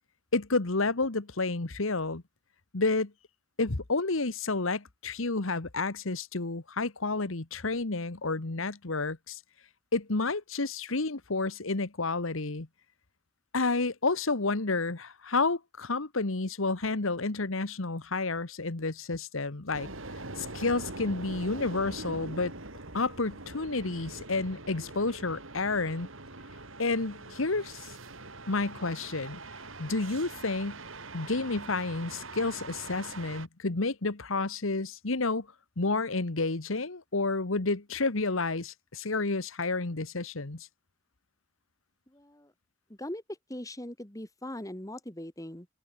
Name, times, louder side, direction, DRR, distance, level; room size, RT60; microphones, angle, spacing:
voice 1, 0.3-2.2 2.7-3.1 3.6-9.4 9.9-12.7 13.5-19.9 20.4-22.5 22.9-26.1 26.8-27.9 28.5-29.4 29.8-30.8 31.1-35.5 35.8-40.7, left 3 dB, 80° left, 1.5 m, -30 dB
sound 1, 19.7-33.5, right 2 dB, 75° right, 5.4 m, -43 dB
voice 2, 42.1-42.5 42.9-45.7, left 1 dB, 15° left, 2.0 m, -40 dB
head